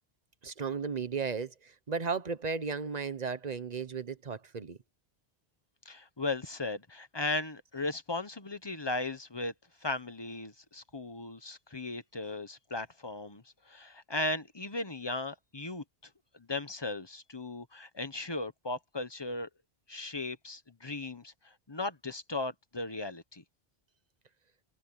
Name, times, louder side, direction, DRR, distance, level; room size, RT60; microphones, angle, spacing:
voice 1, 0.4-4.8, right 5 dB, 45° right, 1.0 m, -35 dB
voice 2, 5.8-9.5 9.8-15.8 16.3-19.5 19.9-23.4, left 2 dB, 25° left, 1.1 m, -37 dB
omnidirectional pair, 1.0 m